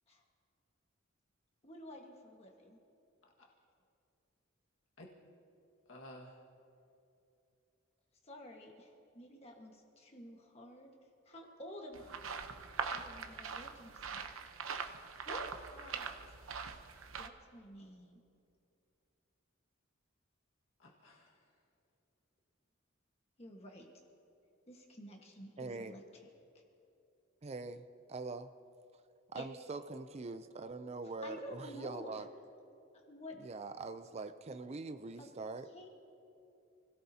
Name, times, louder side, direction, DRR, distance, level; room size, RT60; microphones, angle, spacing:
voice 1, 1.6-2.8 8.2-10.9 11.2-12.2 12.9-14.3 15.3-16.1 17.2-18.2 23.4-23.9 24.7-26.0 29.3-29.5 31.2-32.2 33.0-33.4 35.2-35.3 35.7-35.9, equal, 30° left, 0 dB, 1.5 m, -50 dB
voice 2, 5.9-6.4 20.8-21.4, left 1 dB, 75° left, -1 dB, 1.7 m, -53 dB
sound 1, 11.9-17.3, right 5 dB, 90° right, 0.9 m, -42 dB
voice 3, 25.6-26.0 27.4-28.5 29.3-32.3 33.4-35.7, right 3 dB, 30° right, 10 dB, 0.4 m, -43 dB
29.0 x 17.5 x 2.8 m, 2.7 s
head